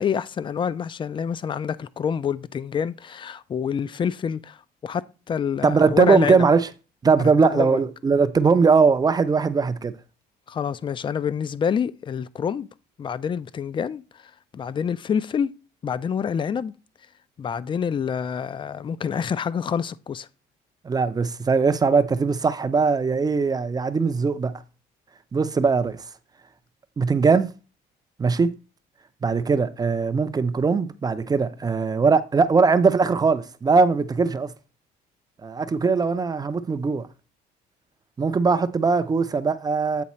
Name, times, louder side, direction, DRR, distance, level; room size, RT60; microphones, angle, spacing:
voice 1, 0.0-6.4 7.4-7.8 10.5-12.7 13.0-14.0 14.5-15.5 15.8-16.7 17.4-20.3, left 7 dB, 30° left, 0.4 m, -27 dB
voice 2, 5.6-6.7 7.0-9.9 20.8-24.6 25.3-26.0 27.0-27.5 28.2-28.6 29.2-34.5 35.4-37.1 38.2-40.0, right 4 dB, 25° right, 0.5 m, -20 dB
8.4 x 3.8 x 4.3 m
cardioid pair, 110°, 17 cm